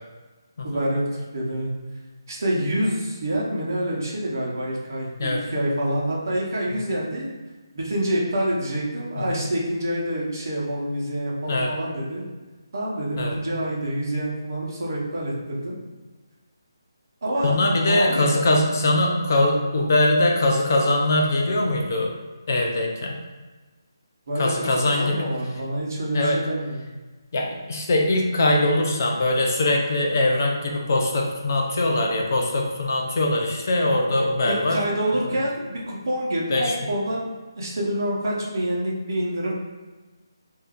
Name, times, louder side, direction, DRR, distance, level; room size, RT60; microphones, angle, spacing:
voice 1, 0.6-1.7 2.3-7.3 7.7-12.2 12.7-15.8 17.2-17.6 17.9-18.4 24.3-26.8 34.4-37.3 37.6-39.5, right 1 dB, 50° right, -4 dB, 0.8 m, -27 dB
voice 2, 9.2-9.5 11.5-11.7 13.2-13.3 17.4-22.1 22.5-23.2 24.4-25.3 26.1-26.4 27.3-34.8 36.5-36.7, left 1 dB, 40° left, 0 dB, 0.4 m, -22 dB
2.6 x 2.3 x 3.5 m, 1.3 s
hypercardioid pair, 175°, 2 cm